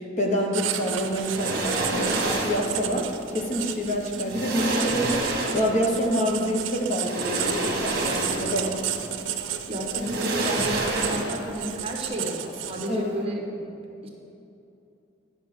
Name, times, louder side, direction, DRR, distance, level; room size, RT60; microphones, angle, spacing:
voice 1, 0.2-3.1 3.3-8.8 12.9-13.2, equal, 40° left, 1 dB, 1.0 m, -27 dB
Writing, 0.5-13.1, right 10 dB, 85° right, 0.5 m, -33 dB
sound 1, 1.2-2.7 3.8-3.9 4.3-5.9 6.9-8.7 9.0-9.1 9.9-11.6 11.8-12.0, right 2 dB, 55° right, 1.4 m, -28 dB
voice 2, 9.7-13.7 14.0-14.1, equal, 30° right, 0 dB, 1.2 m, -31 dB
10.5 x 5.7 x 5.0 m, 2.7 s
head